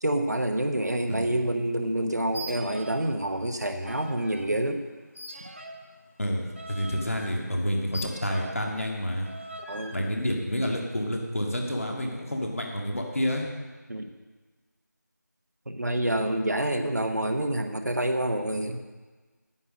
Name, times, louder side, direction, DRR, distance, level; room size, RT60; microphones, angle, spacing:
voice 1, 0.0-4.8 9.7-10.1 13.9-14.1 15.7-18.8, right 1 dB, 60° right, 5 dB, 1.1 m, -27 dB
sound 1, 2.3-3.2 3.4-4.5 5.1-8.7 9.2-10.0, equal, 40° right, 1.0 m, -42 dB
voice 2, 6.2-9.3 9.9-13.5, equal, 45° left, 1 dB, 1.9 m, -29 dB
9.8 x 9.4 x 6.3 m, 1.3 s
figure-of-eight pair, 180°, 10 cm